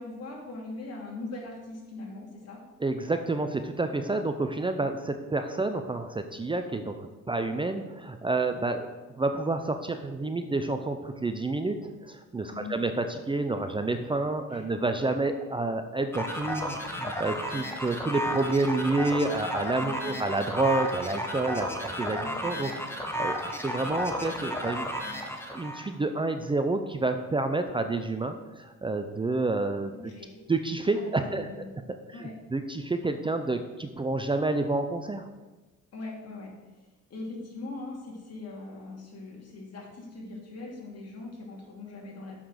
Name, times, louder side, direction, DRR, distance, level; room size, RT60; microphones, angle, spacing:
voice 1, 0.0-2.6 12.5-12.8 14.5-14.6 19.8-20.2 22.2-22.5 29.9-30.4 30.9-31.7 32.1-32.3 35.9-42.4, left 2 dB, 55° left, -2 dB, 2.7 m, -41 dB
voice 2, 2.8-24.9 25.5-29.9 30.5-31.5 31.9-35.3, right 2 dB, 15° right, 7 dB, 0.5 m, -29 dB
sound 1, 16.1-25.9, equal, 10° left, 1.3 m, -33 dB
6.7 x 5.8 x 6.4 m, 1.2 s
cardioid pair, 90°, 30 cm